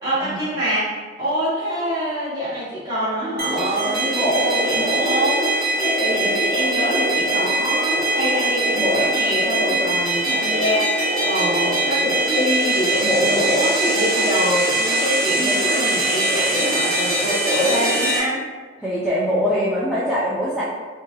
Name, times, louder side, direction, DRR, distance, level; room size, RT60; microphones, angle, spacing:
voice 1, 0.0-18.4, equal, 20° right, -12 dB, 1.2 m, -24 dB
sound 1, 3.4-18.2, right 1 dB, 55° right, 0.8 m, -21 dB
voice 2, 18.8-20.6, equal, 5° right, -9 dB, 0.3 m, -22 dB
2.7 x 2.2 x 2.9 m, 1.4 s
head